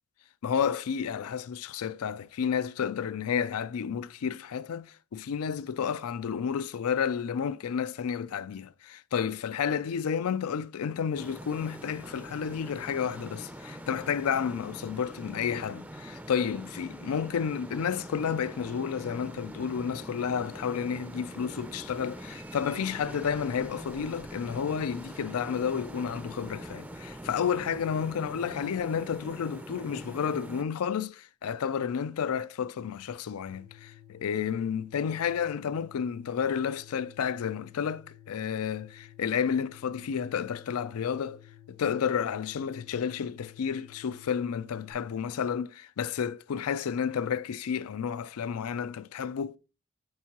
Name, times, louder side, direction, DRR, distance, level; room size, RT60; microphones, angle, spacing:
voice 1, 0.4-41.4 41.7-49.5, left 7 dB, 90° left, 0.4 m, -31 dB
sound 1, 11.2-30.6, right 1 dB, 5° right, 0.4 m, -43 dB
sound 2, 33.5-44.9, left 10 dB, 85° right, 1.1 m, -53 dB
9.4 x 4.7 x 2.9 m
head